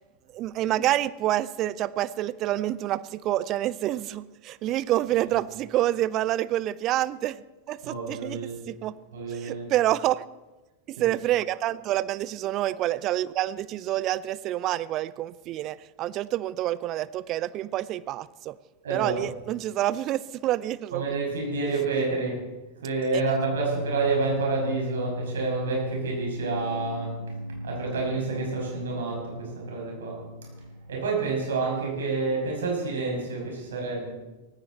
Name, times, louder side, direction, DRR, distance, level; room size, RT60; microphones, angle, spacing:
voice 1, 0.3-8.4 8.7-8.9 9.3-10.2 10.9-18.6 18.9-21.0 23.1-23.2, right 14 dB, 35° right, 0.5 m, -27 dB
voice 2, 7.8-8.6 9.1-9.7 11.0-11.1 18.8-19.2 20.9-27.2 27.6-30.2 30.9-34.1, right 3 dB, 65° right, 6.1 m, -29 dB
sound 1, 23.2-32.0, equal, 90° left, 0.5 m, -36 dB
18.0 x 15.5 x 4.2 m
figure-of-eight pair, 90°, 0 cm